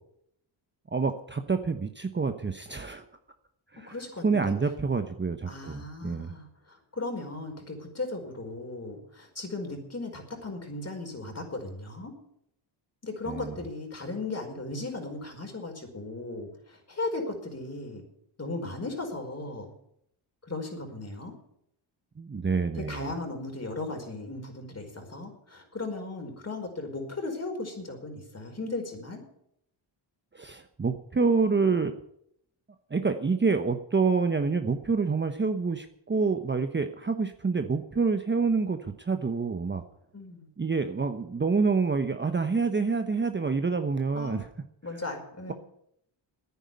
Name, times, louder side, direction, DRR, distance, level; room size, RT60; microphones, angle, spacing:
voice 1, 0.9-3.0 3.7-3.9 4.2-6.3 13.3-13.6 22.2-23.1 30.3-31.9 32.9-39.8 40.6-44.5 44.9-45.0, right 4 dB, 20° right, 7 dB, 1.0 m, -27 dB
voice 2, 3.9-4.5 5.5-12.1 13.0-18.0 18.4-19.7 20.4-21.3 22.7-29.2 40.1-40.5 44.1-44.4 44.8-45.5, left 2 dB, 30° left, 3 dB, 4.9 m, -36 dB
10.0 x 9.6 x 9.6 m, 0.74 s
cardioid pair, 70°, 49 cm